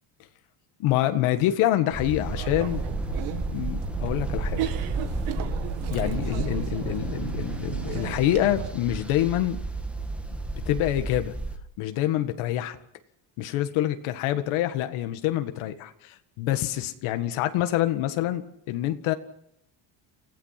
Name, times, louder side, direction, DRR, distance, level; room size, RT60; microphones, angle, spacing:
voice 1, 0.8-2.8 3.5-4.6 5.9-9.6 10.7-11.3 11.8-12.8 13.4-18.4 18.7-19.1, left 13 dB, 75° left, 8 dB, 1.8 m, -26 dB
sound 1, 1.9-11.6, right 1 dB, ahead, 1.6 m, -33 dB
sound 2, 2.3-8.7, right 10 dB, 75° right, 2.2 m, -33 dB
28.5 x 16.0 x 5.9 m, 0.71 s
cardioid pair, 140°, 49 cm